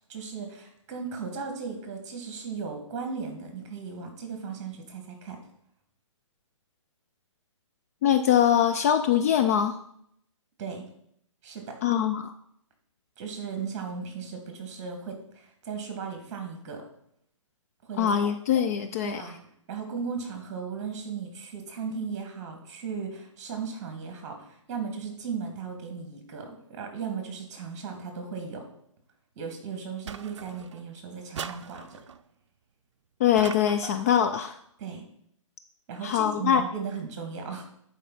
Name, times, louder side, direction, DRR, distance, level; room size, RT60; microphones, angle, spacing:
voice 1, 0.1-5.4 10.6-10.9 11.4-11.8 13.2-16.8 17.8-18.3 19.0-19.4 19.7-28.6 29.4-32.0 34.8-35.0 35.9-37.7, right 5 dB, 30° right, 4 dB, 2.1 m, -36 dB
voice 2, 8.0-9.8 11.8-12.3 18.0-19.2 33.2-34.6 36.0-36.6, left 9 dB, 30° left, 7 dB, 0.4 m, -23 dB
sound 1, 30.1-30.9 31.3-32.2 33.4-34.2, right 7 dB, 60° right, 0.5 m, -40 dB
11.0 x 4.7 x 4.2 m, 0.71 s
figure-of-eight pair, 140°, 17 cm